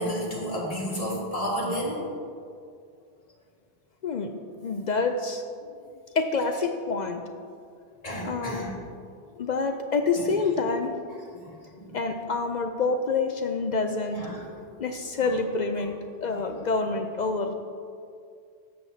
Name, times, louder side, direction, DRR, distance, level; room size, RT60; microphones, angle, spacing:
voice 1, 0.0-2.0 8.0-8.8 10.2-10.3 11.3-12.0 14.1-14.5 15.8-15.9 16.3-16.4, equal, 35° left, -4 dB, 1.8 m, -32 dB
voice 2, 4.6-5.4 6.1-7.2 8.2-8.7 9.4-10.9 11.9-14.2 14.8-17.5, left 4 dB, 55° left, 5 dB, 0.5 m, -27 dB
13.0 x 7.3 x 2.7 m, 2.3 s
omnidirectional pair, 1.1 m